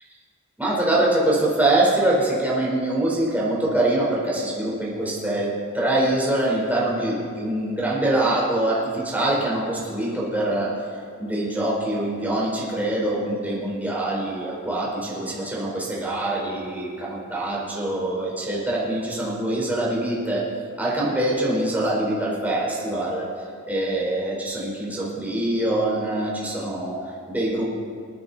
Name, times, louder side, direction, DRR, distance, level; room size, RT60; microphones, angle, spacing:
voice 1, 0.6-10.8 11.2-20.5 20.8-23.3 23.7-27.7, right 1 dB, 10° right, -5 dB, 4.3 m, -24 dB
27.0 x 9.5 x 4.2 m, 2.3 s
head